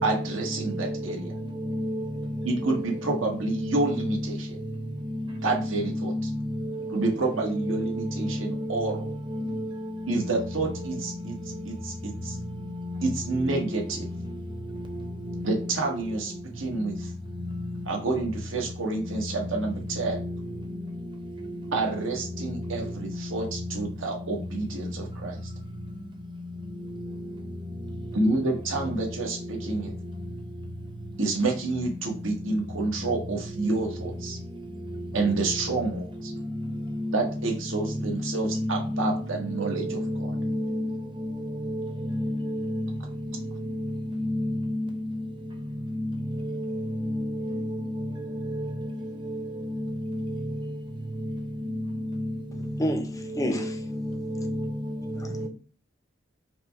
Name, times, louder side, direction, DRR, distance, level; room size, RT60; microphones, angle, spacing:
voice 1, 0.0-1.3 2.4-4.6 5.4-6.1 6.9-9.1 10.1-11.4 11.6-12.4 13.0-14.1 15.4-17.1 17.9-20.2 21.7-25.4 28.1-29.9 31.2-34.4 35.1-36.3 37.1-40.3, right 3 dB, 75° right, 1.2 m, -29 dB
voice 2, 38.5-39.1 39.9-40.9 42.1-42.8 44.2-44.8 47.1-47.2 47.5-47.6 54.3-54.5, left 1 dB, 25° right, 0.8 m, -29 dB
voice 3, 52.5-54.2 55.1-55.5, equal, 15° left, 0.5 m, -31 dB
4.9 x 2.2 x 4.5 m
head